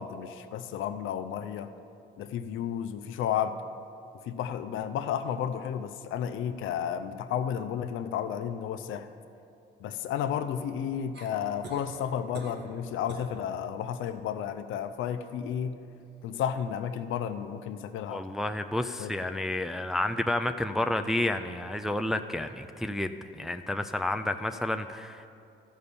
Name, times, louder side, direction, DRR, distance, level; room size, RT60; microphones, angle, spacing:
voice 1, 0.0-1.7 2.2-3.6 4.2-9.1 9.8-15.8 16.2-18.2 19.0-19.4, left 9 dB, 80° left, 9 dB, 0.5 m, -32 dB
sound 1, 11.1-11.9 12.3-12.7 13.1-13.3 13.8-14.2 16.0-16.1, right 3 dB, 60° right, 1.4 m, -45 dB
voice 2, 18.1-25.3, left 1 dB, ahead, 7 dB, 0.4 m, -30 dB
13.0 x 5.5 x 6.8 m, 2.6 s
cardioid pair, 90°, 20 cm